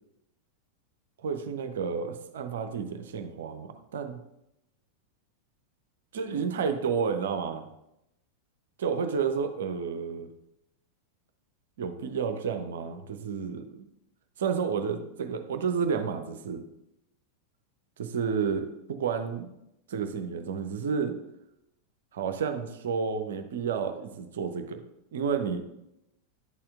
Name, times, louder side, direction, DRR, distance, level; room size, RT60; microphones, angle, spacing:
voice 1, 1.2-4.2 6.1-7.7 8.8-10.3 11.8-13.9 14.4-16.6 18.0-19.5 19.9-21.2 22.1-24.8 25.1-25.6, right 6 dB, 60° right, 6 dB, 0.6 m, -31 dB
10.5 x 4.3 x 2.4 m, 0.86 s
figure-of-eight pair, 90°, 0 cm